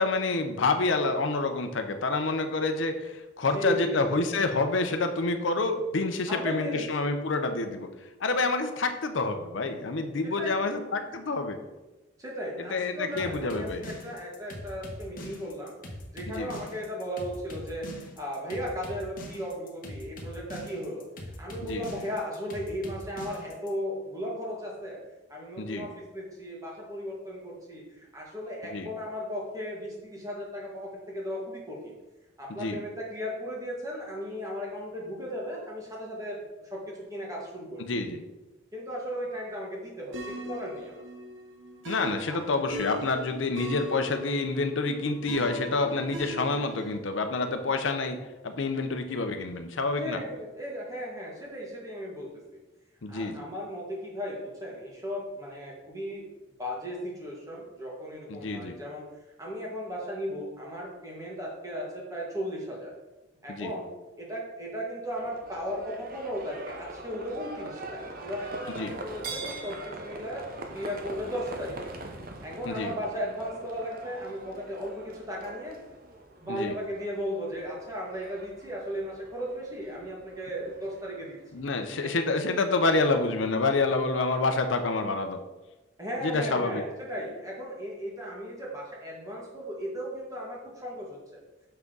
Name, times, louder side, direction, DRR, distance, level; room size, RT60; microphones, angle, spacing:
voice 1, 0.0-7.9 8.2-11.6 12.6-13.8 16.3-16.5 21.6-21.9 25.6-25.9 28.7-28.9 32.5-32.8 37.8-38.2 41.9-48.2 48.4-50.2 53.0-53.5 58.3-58.8 63.5-63.7 68.7-68.9 72.7-72.9 76.5-76.7 81.5-85.4 86.2-86.8, left 3 dB, 80° left, 7 dB, 0.7 m, -28 dB
voice 2, 3.5-4.4 6.3-7.1 10.2-10.8 12.2-15.7 16.1-17.9 18.2-21.0 21.4-25.0 25.3-31.9 32.4-37.8 38.7-41.0 42.3-42.4 50.0-52.6 53.1-56.2 56.6-59.0 59.4-62.9 63.4-63.9 64.2-70.4 70.7-71.9 72.4-75.8 76.4-81.4 82.0-82.1 86.0-91.4, equal, 15° right, -3 dB, 1.8 m, -36 dB
sound 1, 13.2-23.7, left 1 dB, 45° left, 1.1 m, -42 dB
sound 2, 40.1-47.0, equal, 80° right, 1.0 m, -40 dB
Livestock farm animals working animals, 65.2-81.6, right 2 dB, 50° right, 0.9 m, -43 dB
6.8 x 6.0 x 3.9 m, 1.1 s
head